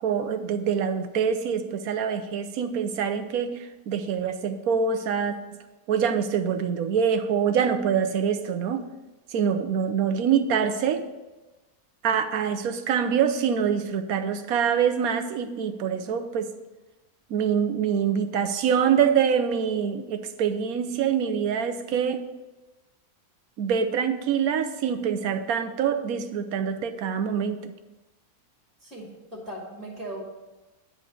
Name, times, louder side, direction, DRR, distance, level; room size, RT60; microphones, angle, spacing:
voice 1, 0.0-5.6 5.9-8.9 9.3-11.1 12.0-16.5 17.3-22.3 23.6-27.7, right 7 dB, 85° right, 8 dB, 1.2 m, -25 dB
voice 2, 28.8-30.2, right 1 dB, ahead, -3 dB, 1.9 m, -38 dB
9.7 x 4.0 x 7.4 m, 1.1 s
omnidirectional pair, 1.5 m